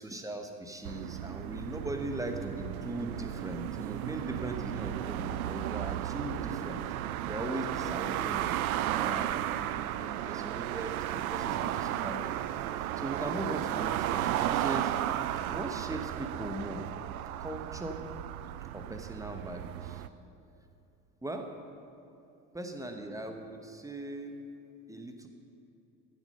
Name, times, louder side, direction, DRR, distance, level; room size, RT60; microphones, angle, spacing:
voice 1, 0.0-6.9 7.2-14.9 15.5-16.9 17.4-18.0 18.7-20.0 21.2-21.5 22.5-24.4 24.9-25.3, right 1 dB, 5° right, 5 dB, 1.2 m, -39 dB
sound 1, 0.8-20.1, right 12 dB, 70° right, 0.5 m, -34 dB
15.0 x 7.2 x 5.6 m, 2.7 s
figure-of-eight pair, 65°, 45 cm